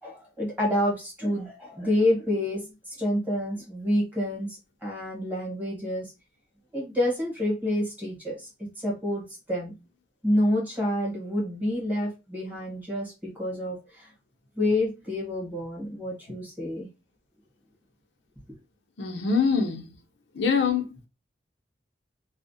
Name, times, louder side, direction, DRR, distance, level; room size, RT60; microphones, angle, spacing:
voice 1, 0.0-2.7 3.0-4.5 4.8-6.1 6.7-8.5 8.8-9.2 9.5-9.7 10.2-14.1 14.6-16.9, left 1 dB, 10° right, 1.0 m, -28 dB
voice 2, 19.0-19.9 20.3-21.1, left 5 dB, 90° left, 0.6 m, -24 dB
2.4 x 2.0 x 2.5 m
head